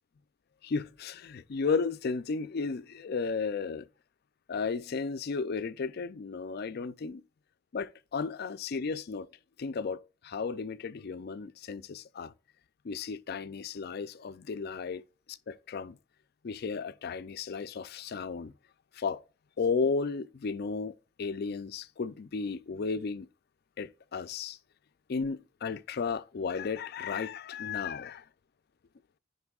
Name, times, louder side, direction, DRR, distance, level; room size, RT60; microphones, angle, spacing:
voice 1, 0.6-3.9 4.5-7.2 7.7-9.3 9.6-12.3 12.8-16.0 16.4-18.5 18.9-19.2 19.6-20.9 21.2-23.3 23.8-24.6 25.1-28.2, left 5 dB, 55° left, 0.4 m, -34 dB
13.0 x 5.3 x 2.4 m
head